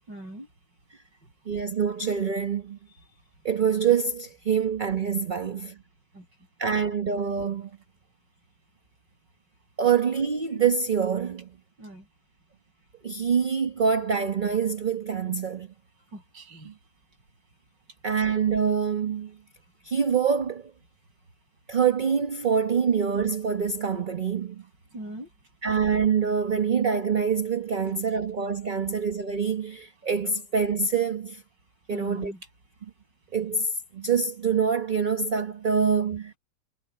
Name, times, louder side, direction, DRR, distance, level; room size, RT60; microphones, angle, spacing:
voice 1, 0.1-0.5 6.1-6.3 11.8-12.1 16.1-16.7 24.9-25.3 31.9-32.5, right 1 dB, 65° right, 8.9 m, -41 dB
voice 2, 1.5-2.8 3.4-5.8 6.6-7.7 9.8-11.5 13.0-15.7 16.6-16.7 18.0-19.4 19.8-20.7 21.7-24.6 25.6-31.4 31.9-32.3 33.3-36.3, right 6 dB, 30° right, 1.1 m, -25 dB
omnidirectional pair, 2.1 m